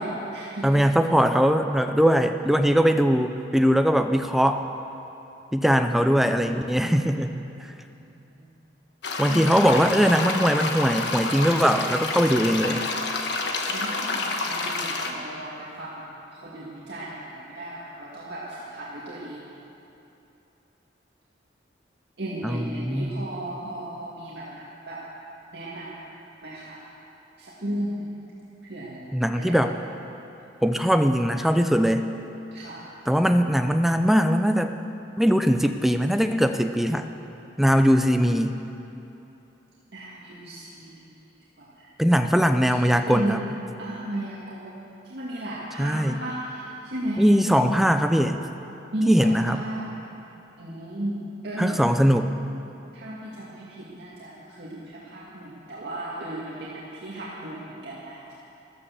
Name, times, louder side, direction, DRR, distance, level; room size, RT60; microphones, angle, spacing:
voice 1, 0.0-0.8 6.0-6.6 7.9-8.5 9.3-9.9 13.7-19.4 22.2-25.0 25.5-25.9 26.4-26.8 27.4-28.1 28.6-29.0 29.3-29.7 32.5-32.9 39.9-41.1 41.6-41.9 42.7-43.5 43.8-44.8 45.0-47.3 48.9-49.9 50.6-51.2 51.4-51.8 52.9-58.3, right 1 dB, 65° right, -7 dB, 2.1 m, -35 dB
voice 2, 0.6-4.6 5.5-7.3 9.2-12.8 22.4-23.3 29.1-29.8 30.6-32.0 33.1-34.7 35.2-37.1 37.6-38.6 42.0-43.4 45.8-46.2 47.2-48.4 49.1-49.6 51.6-52.3, equal, ahead, 7 dB, 0.5 m, -21 dB
sound 1, 9.0-15.1, left 3 dB, 70° left, 1.3 m, -29 dB
13.5 x 12.5 x 7.2 m, 2.9 s
head